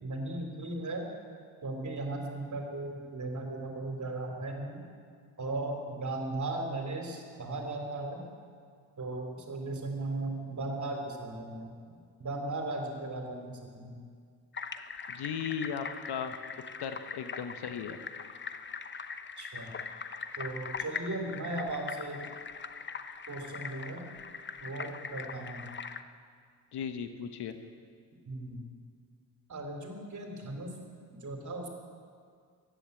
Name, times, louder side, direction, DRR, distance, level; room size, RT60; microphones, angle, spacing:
voice 1, 0.0-1.1 1.6-4.8 5.4-8.2 9.0-14.0 19.4-19.7 20.3-22.2 23.3-24.1 24.6-25.7 28.3-28.6 29.5-30.7 31.1-31.7, right 2 dB, 35° right, 3 dB, 3.6 m, -37 dB
sound 1, 14.5-26.0, left 5 dB, 25° left, 0.8 m, -41 dB
voice 2, 15.1-16.4 16.8-18.0 26.7-27.6, left 7 dB, 55° left, 8 dB, 1.2 m, -36 dB
14.5 x 10.5 x 8.4 m, 2.1 s
hypercardioid pair, 55°, 47 cm